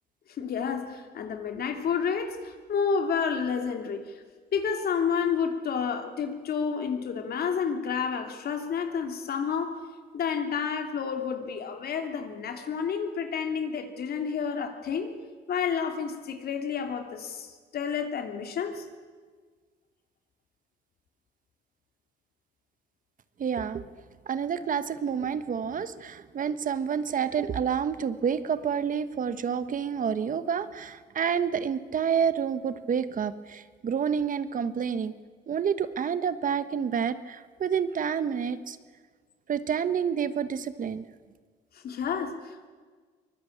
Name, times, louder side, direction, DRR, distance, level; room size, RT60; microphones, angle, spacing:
voice 1, 0.4-4.2 4.5-9.8 10.1-15.1 15.5-18.8 41.8-42.7, left 6 dB, 60° left, 5 dB, 3.1 m, -30 dB
voice 2, 23.4-23.8 24.3-35.1 35.5-38.8 39.5-41.1, right 7 dB, 50° right, 12 dB, 1.3 m, -29 dB
23.5 x 21.0 x 8.7 m, 1.5 s
cardioid pair, 95°, 18 cm